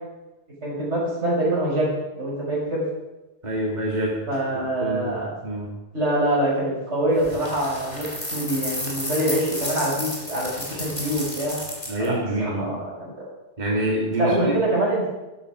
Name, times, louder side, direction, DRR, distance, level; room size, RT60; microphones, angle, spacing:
voice 1, 0.6-2.8 4.3-5.3 5.9-8.1 8.3-11.6 12.0-13.3 14.2-15.1, right 1 dB, 80° right, -5 dB, 6.1 m, -25 dB
voice 2, 3.4-4.1 4.8-5.2 5.4-5.7 11.9-12.7 13.6-14.5, right 1 dB, 40° right, -3 dB, 2.6 m, -26 dB
sound 1, 7.2-12.1, left 1 dB, 25° left, 3.5 m, -32 dB
13.0 x 12.0 x 5.0 m, 1.0 s
omnidirectional pair, 1.2 m